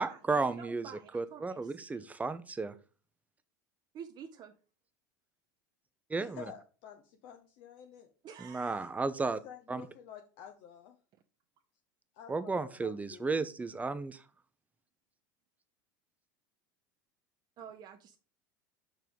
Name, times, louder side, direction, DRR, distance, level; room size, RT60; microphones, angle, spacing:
voice 1, 0.0-2.7 6.1-6.4 8.4-9.4 9.7-9.8 12.3-14.2, right 3 dB, 15° right, 13 dB, 0.7 m, -33 dB
voice 2, 0.6-1.6 3.9-4.5 8.2-8.9 17.6-18.2, right 8 dB, 45° right, 5 dB, 0.8 m, -49 dB
voice 3, 6.2-8.1 9.3-11.0 12.1-13.3, left 9 dB, 60° left, 4 dB, 1.1 m, -51 dB
6.0 x 4.7 x 5.1 m, 0.36 s
hypercardioid pair, 85°, 11 cm